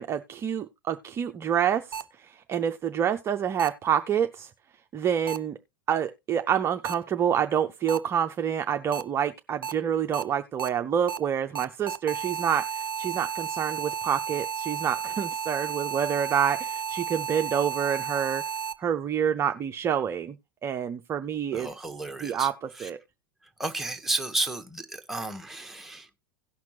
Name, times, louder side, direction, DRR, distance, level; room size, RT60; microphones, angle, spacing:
voice 1, 0.0-4.5 4.9-5.6 5.9-18.4 18.8-20.4 20.6-21.7 22.2-23.0, right 8 dB, 25° right, 0.5 m, -27 dB
sound 1, 1.9-2.0 3.6-3.7 5.3-5.4 6.8-6.9 7.9-8.0 8.9-9.0 9.6-9.7 10.1-10.2 10.6-10.7 11.1-11.2 11.6-18.7, right 7 dB, 80° right, 0.5 m, -32 dB
voice 2, 21.5-22.5 22.8-22.9 23.6-26.1, right 2 dB, ahead, 1.1 m, -32 dB
17.5 x 5.9 x 2.7 m
figure-of-eight pair, 90°, 11 cm